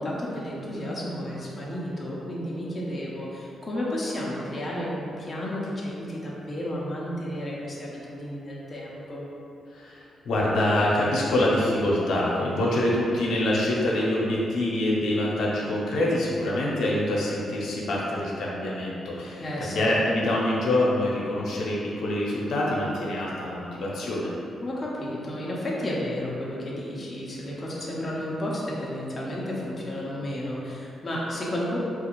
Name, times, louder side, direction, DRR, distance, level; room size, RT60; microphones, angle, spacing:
voice 1, 0.0-9.2 19.4-19.9 24.6-31.8, left 1 dB, 20° left, -6 dB, 0.5 m, -32 dB
voice 2, 9.7-24.3, left 1 dB, 75° left, -5 dB, 0.7 m, -25 dB
4.2 x 2.4 x 3.0 m, 2.7 s
wide cardioid pair, 145°, 0 cm